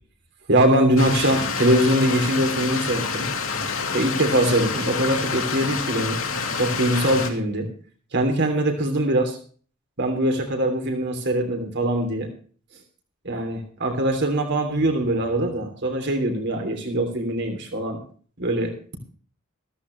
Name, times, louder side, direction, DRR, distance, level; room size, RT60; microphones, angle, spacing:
voice 1, 0.5-3.3 3.9-6.2 6.6-7.7 8.1-9.4 10.0-12.3 13.2-18.0 18.4-18.7, right 1 dB, 60° right, 4 dB, 3.2 m, -22 dB
Stream, 1.0-7.3, left 5 dB, 80° left, 2.7 m, -27 dB
15.0 x 14.0 x 3.2 m, 0.42 s
head